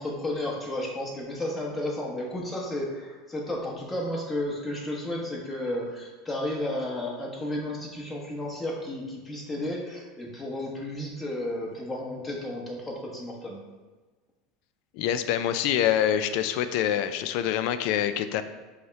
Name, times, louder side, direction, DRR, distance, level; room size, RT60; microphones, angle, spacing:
voice 1, 0.0-13.6, left 1 dB, 15° left, -3 dB, 1.0 m, -33 dB
voice 2, 14.9-18.4, left 10 dB, 65° left, 11 dB, 0.3 m, -25 dB
5.4 x 2.1 x 4.6 m, 1.2 s
supercardioid pair, 110°, 0 cm